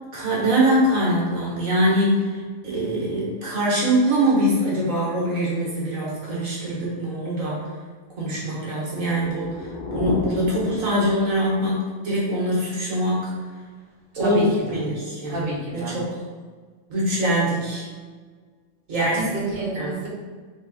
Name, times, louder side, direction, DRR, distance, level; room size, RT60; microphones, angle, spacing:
voice 1, 0.1-7.6 8.2-13.4 14.2-14.4 14.7-16.2 16.9-17.8 18.9-19.2 19.7-20.0, right 1 dB, 75° right, -5 dB, 1.8 m, -23 dB
sound 1, 8.9-11.6, left 3 dB, 65° left, 0.3 m, -32 dB
voice 2, 14.1-14.5 15.3-16.0 18.9-20.1, right 2 dB, 45° right, -6 dB, 1.5 m, -29 dB
3.8 x 3.2 x 4.0 m, 1.5 s
omnidirectional pair, 1.4 m